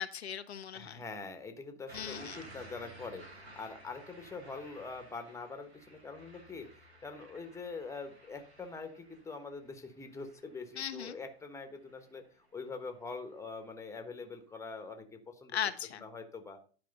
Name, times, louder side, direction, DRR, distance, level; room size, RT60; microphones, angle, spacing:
voice 1, 0.0-1.0 1.9-2.4 10.8-11.2 15.5-16.0, left 9 dB, 85° left, 9 dB, 0.8 m, -38 dB
voice 2, 0.7-6.7 7.0-15.6 16.0-16.6, left 4 dB, 10° left, 7 dB, 1.3 m, -44 dB
sound 1, 1.9-12.7 13.1-13.5, right 2 dB, 80° right, 3.7 m, -55 dB
10.5 x 4.8 x 5.3 m, 0.40 s
hypercardioid pair, 100°, 32 cm